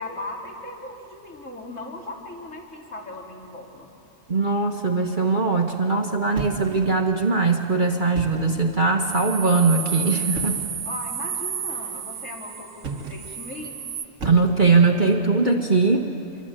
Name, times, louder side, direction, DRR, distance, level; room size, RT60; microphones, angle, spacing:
voice 1, 0.0-3.9 10.8-13.7, left 2 dB, 50° left, -2 dB, 3.9 m, -37 dB
voice 2, 4.3-10.6 14.2-16.1, right 4 dB, 35° right, 2 dB, 1.4 m, -20 dB
sound 1, 6.3-7.2 8.0-8.7 10.3-10.8 12.8-13.4 14.2-14.9, right 3 dB, 55° right, 1.8 m, -35 dB
sound 2, 9.0-14.0, right 7 dB, 80° right, 1.6 m, -31 dB
26.5 x 23.5 x 8.9 m, 2.6 s
omnidirectional pair, 1.6 m